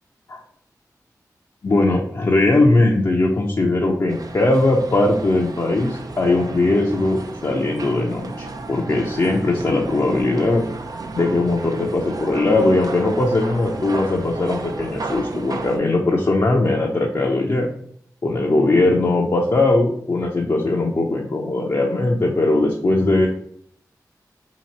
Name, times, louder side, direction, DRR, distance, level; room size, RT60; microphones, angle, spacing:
voice 1, 1.6-8.3 8.7-10.7 11.1-17.7 18.2-23.3, left 2 dB, 55° left, -2 dB, 0.6 m, -19 dB
sound 1, 4.1-15.8, right 3 dB, 60° right, 0.4 m, -33 dB
2.9 x 2.8 x 4.1 m, 0.64 s
cardioid pair, 40°, 7 cm